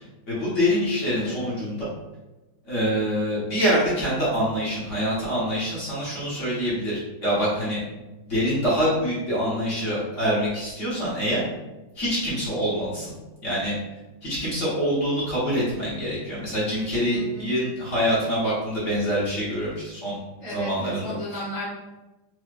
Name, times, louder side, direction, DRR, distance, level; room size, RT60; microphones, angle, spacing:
voice 1, 0.3-1.8 2.6-7.8 8.2-11.4 11.9-13.1 13.4-13.8 14.2-20.2 20.5-21.1, equal, 45° left, -8 dB, 1.3 m, -25 dB
voice 2, 17.1-17.5 20.4-21.7, left 1 dB, 35° right, -10 dB, 0.5 m, -34 dB
4.5 x 2.4 x 2.4 m, 1.1 s
omnidirectional pair, 2.2 m